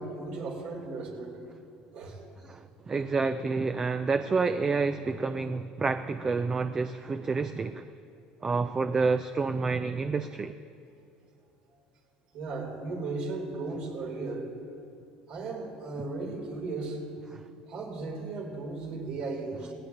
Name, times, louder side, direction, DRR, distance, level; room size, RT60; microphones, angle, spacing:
voice 1, 0.0-1.4 1.9-2.2 12.3-14.5 15.3-17.0 17.7-19.7, right 3 dB, 65° right, -1 dB, 3.5 m, -36 dB
voice 2, 2.4-7.9 8.4-10.5 17.3-17.5, right 4 dB, 25° right, 10 dB, 0.4 m, -29 dB
19.0 x 16.0 x 2.9 m, 2.6 s
supercardioid pair, 105°, 3 cm